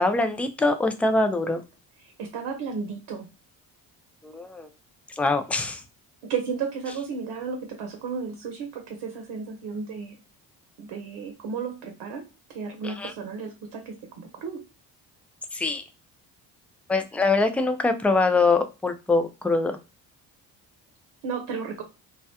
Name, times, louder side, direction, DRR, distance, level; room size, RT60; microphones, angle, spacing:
voice 1, 0.0-1.6 4.2-4.7 5.2-5.8 12.8-13.1 15.5-15.8 16.9-19.7, left 3 dB, 5° left, 8 dB, 0.4 m, -23 dB
voice 2, 2.0-3.3 6.2-10.2 10.8-12.2 12.5-14.6 21.2-21.8, right 5 dB, 75° right, 4 dB, 0.7 m, -33 dB
2.4 x 2.1 x 2.8 m, 0.29 s
supercardioid pair, 65°, 42 cm